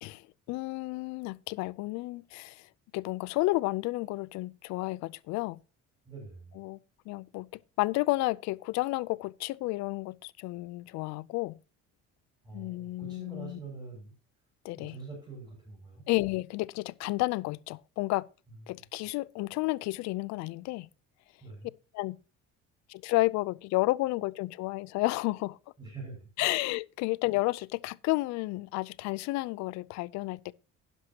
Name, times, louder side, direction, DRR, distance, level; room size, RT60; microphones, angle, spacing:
voice 1, 0.0-2.7 2.9-5.6 6.6-6.8 7.1-7.5 7.8-11.6 12.5-13.6 14.6-15.0 16.1-18.3 18.7-20.9 21.9-22.2 22.9-25.6 26.4-30.5, left 21 dB, 65° left, 0.5 m, -31 dB
voice 2, 6.0-6.6 12.4-14.1 14.8-16.1 18.7-18.8 21.4-21.7 25.8-26.5, right 3 dB, 15° right, 6.0 m, -45 dB
12.0 x 10.0 x 2.9 m
cardioid pair, 170°, 30 cm